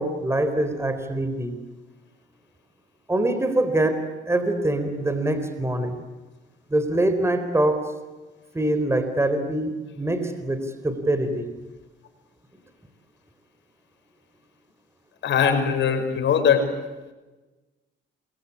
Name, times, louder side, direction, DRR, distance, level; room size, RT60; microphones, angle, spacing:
voice 1, 0.0-1.6 3.1-6.0 6.7-7.9 8.5-11.5, right 1 dB, 15° right, 9 dB, 4.1 m, -24 dB
voice 2, 15.2-16.7, left 7 dB, 65° left, 6 dB, 5.9 m, -21 dB
27.5 x 24.0 x 8.4 m, 1.2 s
cardioid pair, 90°, 20 cm